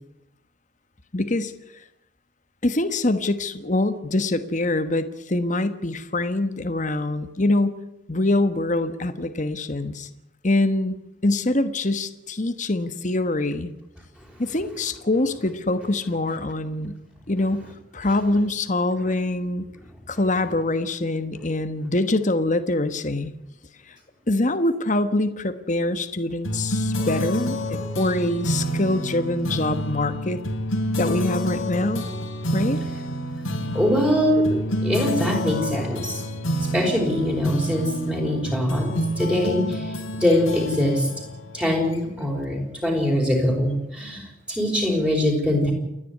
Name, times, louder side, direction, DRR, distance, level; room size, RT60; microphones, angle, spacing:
voice 1, 1.1-1.5 2.6-7.7 8.1-10.1 10.4-11.0 11.2-13.7 14.4-16.9 17.3-17.6 17.9-19.7 20.1-23.3 24.3-30.4 31.0-32.0 32.5-32.8, left 2 dB, 40° left, 10 dB, 1.3 m, -24 dB
sound 1, 26.4-42.3, equal, 90° left, 3.2 m, -28 dB
voice 2, 33.7-36.2 36.7-41.1 41.5-45.7, left 1 dB, 5° right, 0 dB, 5.2 m, -23 dB
29.0 x 10.5 x 9.8 m, 0.87 s
head